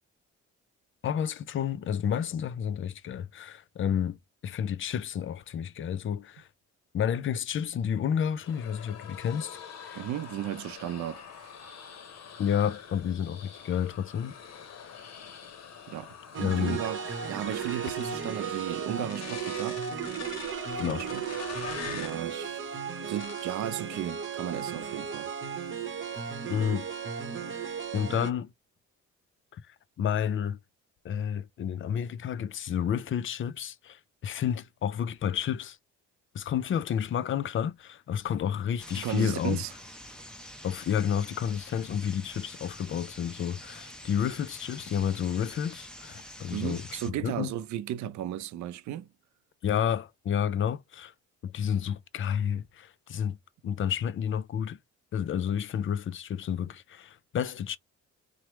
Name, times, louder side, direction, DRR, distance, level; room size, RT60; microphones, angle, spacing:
voice 1, 1.0-6.5 6.9-10.0 12.4-14.3 16.4-16.8 20.8-21.0 26.5-26.8 27.9-28.5 29.5-30.6 31.0-35.8 36.3-39.6 40.6-47.5 49.6-51.1 51.4-53.4 53.6-54.8 55.1-57.8, left 8 dB, 40° left, 0.5 m, -30 dB
sound 1, 8.4-22.2 23.0-23.6 24.0-24.3 24.7-25.4, left 7 dB, 60° left, 0.8 m, -45 dB
voice 2, 9.9-11.5 15.9-19.8 20.8-21.2 21.9-25.3 38.9-39.7 46.5-49.1, right 11 dB, 70° right, 0.5 m, -35 dB
sound 2, 16.3-28.3, right 7 dB, 40° right, 0.9 m, -35 dB
sound 3, 38.8-47.1, left 1 dB, 5° left, 0.7 m, -46 dB
3.0 x 2.1 x 3.0 m
cardioid pair, 90°, 30 cm